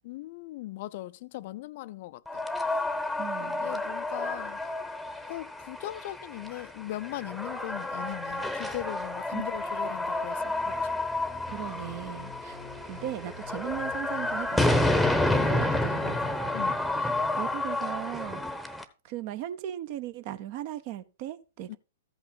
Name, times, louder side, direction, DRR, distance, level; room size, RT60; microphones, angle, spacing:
voice 1, 0.0-2.4 3.4-4.6 5.3-10.8 15.3-16.0 16.5-16.8 21.7-21.8, left 16 dB, 50° left, 0.4 m, -39 dB
sound 1, 2.3-18.8, left 2 dB, ahead, 0.9 m, -30 dB
voice 2, 3.2-3.8 9.3-9.4 11.5-12.6 12.8-14.8 15.4-16.4 16.9-18.5 19.0-21.8, right 12 dB, 45° right, 0.7 m, -38 dB
sound 2, 11.4-16.7, left 5 dB, 65° right, 2.9 m, -48 dB
14.0 x 5.6 x 4.0 m
figure-of-eight pair, 110°, 0 cm